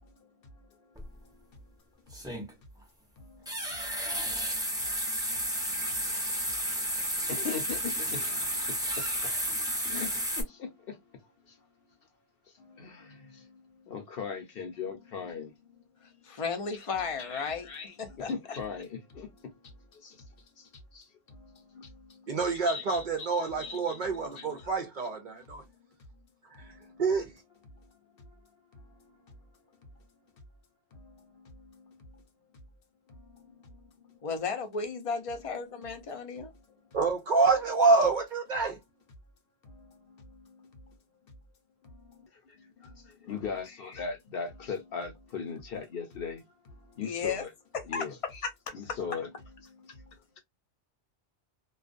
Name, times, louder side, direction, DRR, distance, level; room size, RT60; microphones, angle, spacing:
voice 1, 0.6-1.6 3.2-4.5 5.5-6.1 6.3-6.5 7.2-9.3 9.7-11.0 11.5-11.6 12.6-15.7 17.2-20.3 20.6-22.3 22.6-24.0 24.4-24.6 26.5-27.0 28.2-28.3 28.7-29.3 30.9-32.2 33.2-33.8 34.1-34.2 39.7-40.9 42.0-47.5 47.9-48.2 48.7-49.3 49.6-50.4, left 5 dB, 60° left, 0.9 m, -41 dB
sound 1, 1.0-1.1 2.1-2.5 3.5-10.4, equal, 5° right, 0.6 m, -32 dB
voice 2, 16.2-17.7 18.0-18.3 34.2-36.5 47.0-47.5 47.7-48.1 48.4-48.7, left 5 dB, 40° left, 0.5 m, -34 dB
voice 3, 22.3-25.6 26.5-27.3 36.9-38.8, right 4 dB, 55° right, 0.6 m, -27 dB
2.4 x 2.3 x 2.4 m
omnidirectional pair, 1.2 m